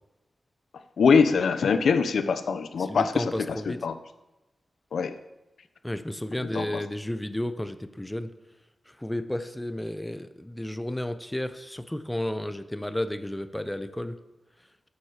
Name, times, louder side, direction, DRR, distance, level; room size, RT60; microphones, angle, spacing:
voice 1, 1.0-4.0 4.9-5.2 6.4-6.8, left 5 dB, 85° left, 11 dB, 0.8 m, -23 dB
voice 2, 2.8-3.8 5.8-8.3 8.9-14.2, left 1 dB, 10° left, 12 dB, 0.7 m, -32 dB
11.5 x 7.4 x 6.5 m, 1.0 s
cardioid pair, 75°, 0 cm